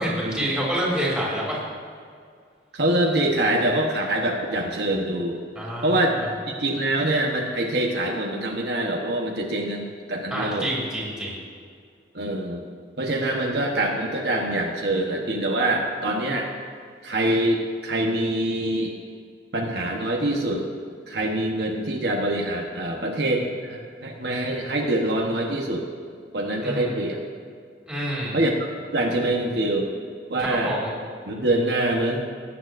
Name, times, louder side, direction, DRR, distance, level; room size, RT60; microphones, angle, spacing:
voice 1, 0.0-1.6 5.5-6.3 10.3-11.4 26.6-26.9 27.9-28.4 30.4-30.9, equal, 5° right, -6 dB, 2.9 m, -27 dB
voice 2, 2.7-5.4 5.8-6.2 6.5-10.7 12.1-12.6 13.0-16.5 17.0-18.9 19.5-20.6 21.1-25.9 26.3-27.2 28.3-28.5 28.9-29.9 30.3-30.7 31.3-32.2, right 1 dB, 70° right, 0 dB, 1.2 m, -24 dB
18.5 x 9.1 x 2.6 m, 2.2 s
head